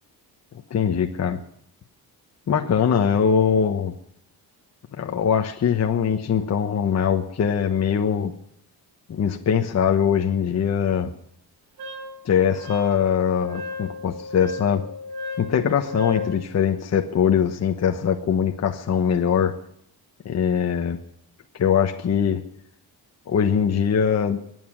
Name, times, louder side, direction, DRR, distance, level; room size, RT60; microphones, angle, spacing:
voice 1, 0.7-1.4 2.5-3.9 5.0-8.3 9.1-11.1 12.2-14.8 15.4-19.5 20.2-21.0 21.6-22.4 23.3-24.4, left 7 dB, 40° left, 4 dB, 1.2 m, -22 dB
Wind instrument woodwind instrument, 11.8-16.4, left 3 dB, 70° right, 3.6 m, -35 dB
24.0 x 9.4 x 6.2 m, 0.68 s
cardioid pair, 155°, 39 cm